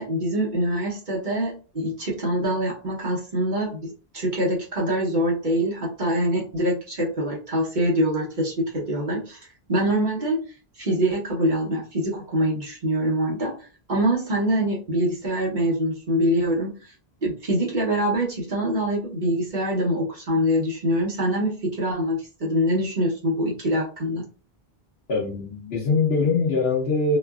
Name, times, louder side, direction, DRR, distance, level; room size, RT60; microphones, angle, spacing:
voice 1, 0.0-10.4 10.8-16.9 17.2-24.3, equal, 50° right, 1.1 m, -24 dB
voice 2, 25.1-27.2, left 3 dB, 80° left, 1.0 m, -22 dB
3.0 x 2.4 x 2.3 m
omnidirectional pair, 1.0 m